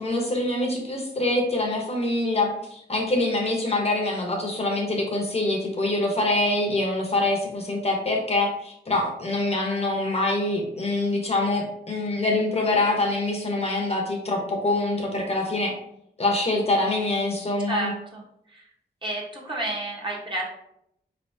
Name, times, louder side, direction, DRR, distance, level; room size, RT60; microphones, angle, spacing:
voice 1, 0.0-15.7 16.2-17.9, left 2 dB, 35° left, 0 dB, 0.9 m, -25 dB
voice 2, 17.7-18.2 18.5-18.6 19.0-20.4, right 2 dB, 30° right, -3 dB, 1.1 m, -30 dB
4.1 x 3.3 x 2.7 m, 0.76 s
wide cardioid pair, 85°, 17 cm